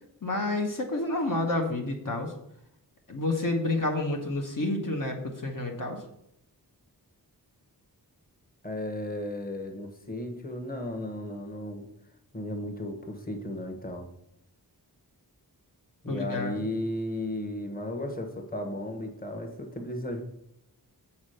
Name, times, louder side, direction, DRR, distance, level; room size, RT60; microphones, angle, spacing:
voice 1, 0.2-2.3 3.1-6.0 16.1-16.5, left 2 dB, 55° left, 1 dB, 1.1 m, -29 dB
voice 2, 8.6-11.9 12.3-14.1 16.0-20.2, left 1 dB, 20° left, 4 dB, 1.3 m, -34 dB
7.2 x 4.2 x 6.5 m, 0.76 s
wide cardioid pair, 75°, 40 cm